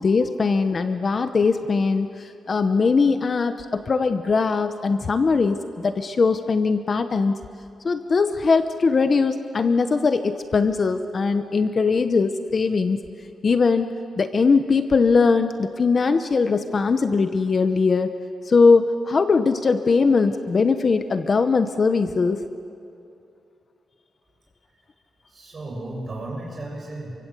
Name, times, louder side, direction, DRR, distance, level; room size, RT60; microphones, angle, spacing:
voice 1, 0.0-7.4 7.8-13.0 13.4-13.9 14.2-18.1 18.5-22.4, left 4 dB, 35° left, 9 dB, 0.8 m, -20 dB
voice 2, 25.3-27.2, right 2 dB, 35° right, -2 dB, 7.9 m, -34 dB
28.5 x 24.5 x 8.2 m, 2.6 s
wide cardioid pair, 170°, 0 cm